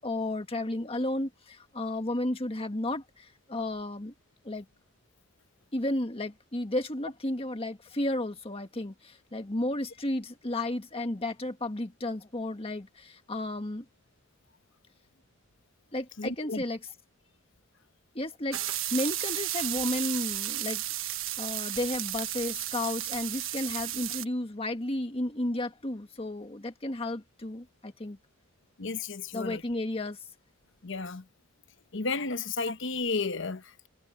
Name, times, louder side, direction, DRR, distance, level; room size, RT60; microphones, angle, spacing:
voice 1, 0.0-4.1 4.4-4.6 5.7-13.8 15.9-16.8 18.1-20.8 21.4-28.2 29.3-30.2, left 1 dB, 30° left, 1.6 m, -33 dB
voice 2, 16.2-16.6 21.6-21.7 28.8-29.6 30.8-31.3 31.9-33.9, left 4 dB, 65° left, 1.1 m, -33 dB
sound 1, 18.5-24.2, right 14 dB, 70° right, 1.4 m, -33 dB
head